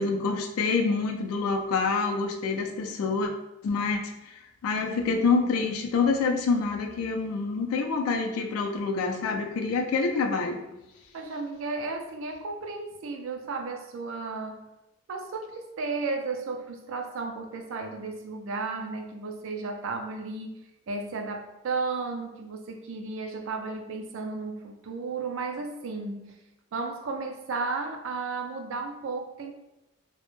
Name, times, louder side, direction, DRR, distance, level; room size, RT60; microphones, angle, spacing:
voice 1, 0.0-3.3 3.6-4.3 4.6-10.6, left 4 dB, 90° left, 3 dB, 0.4 m, -27 dB
voice 2, 11.1-14.7 15.1-20.6 20.9-26.4 26.7-29.5, right 3 dB, 65° right, 3 dB, 0.3 m, -34 dB
2.0 x 2.0 x 2.9 m, 0.94 s
head